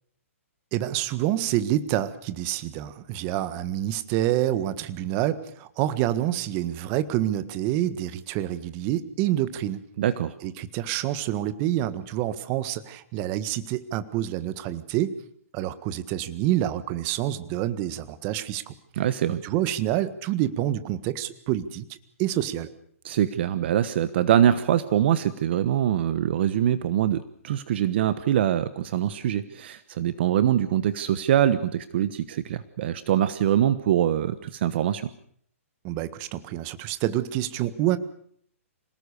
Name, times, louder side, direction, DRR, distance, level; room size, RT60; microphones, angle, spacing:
voice 1, 0.7-9.8 10.4-15.2 15.5-18.7 19.4-22.7 35.8-38.0, right 13 dB, 30° right, 13 dB, 1.6 m, -27 dB
voice 2, 10.0-10.3 19.0-19.4 23.0-35.1, right 10 dB, 50° right, 13 dB, 1.2 m, -23 dB
26.5 x 18.5 x 6.8 m, 0.62 s
hypercardioid pair, 155°, 8 cm